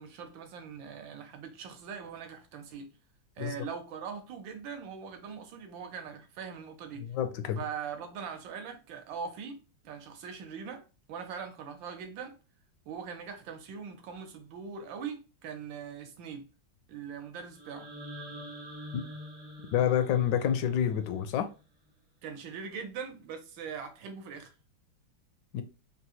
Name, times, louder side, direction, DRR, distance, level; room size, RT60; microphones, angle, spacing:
voice 1, 0.0-2.9 3.4-7.1 7.6-9.6 9.8-10.8 11.1-12.4 12.9-16.5 16.9-17.9 22.2-24.5, right 6 dB, 80° right, 1.5 m, -41 dB
voice 2, 7.0-7.6 18.9-19.0 19.7-21.5 25.5-25.6, left 9 dB, 75° left, 1.1 m, -28 dB
sound 1, 17.5-21.6, equal, 30° right, 0.5 m, -46 dB
4.0 x 2.0 x 2.8 m
omnidirectional pair, 2.1 m